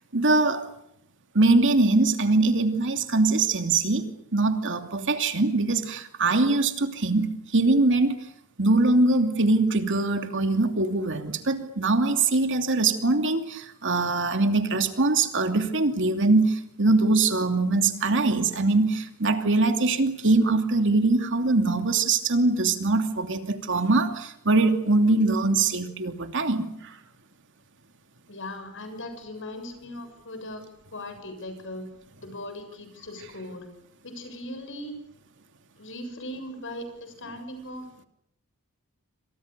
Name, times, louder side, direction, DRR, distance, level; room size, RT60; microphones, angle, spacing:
voice 1, 0.1-0.7 1.3-4.1 4.3-8.2 8.6-27.0, right 3 dB, 55° right, 7 dB, 2.7 m, -22 dB
voice 2, 28.3-30.6 30.9-31.9 32.2-33.7 34.0-34.9 35.8-37.9, left 1 dB, 60° left, 7 dB, 7.5 m, -38 dB
28.5 x 26.0 x 6.8 m, 0.73 s
head